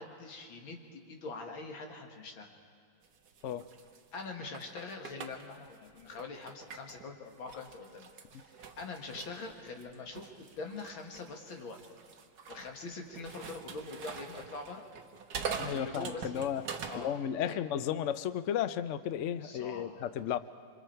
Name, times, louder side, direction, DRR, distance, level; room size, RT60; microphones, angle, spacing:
voice 1, 0.0-2.5 4.1-8.1 8.4-10.3 10.6-12.0 12.5-14.9 15.7-16.5 16.9-17.1 17.4-17.6 19.4-20.0, left 3 dB, 90° left, 3 dB, 2.6 m, -43 dB
sound 1, 3.0-7.1 7.5-17.1, right 6 dB, 55° right, 1.6 m, -44 dB
voice 2, 15.6-16.7 16.9-20.4, left 9 dB, 75° left, 13 dB, 0.7 m, -34 dB
27.5 x 25.0 x 4.5 m, 2.2 s
omnidirectional pair, 2.1 m